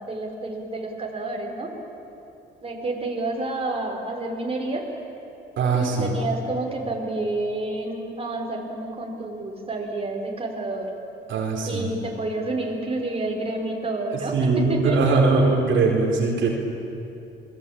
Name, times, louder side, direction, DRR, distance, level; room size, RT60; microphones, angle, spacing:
voice 1, 0.0-1.7 2.6-4.8 5.7-10.9 11.7-15.2, right 2 dB, 30° right, 0 dB, 5.2 m, -29 dB
voice 2, 5.6-6.1 11.3-11.9 14.3-16.5, right 3 dB, 75° right, 0 dB, 4.3 m, -21 dB
28.0 x 21.0 x 8.9 m, 2.9 s
cardioid pair, 90°, 20 cm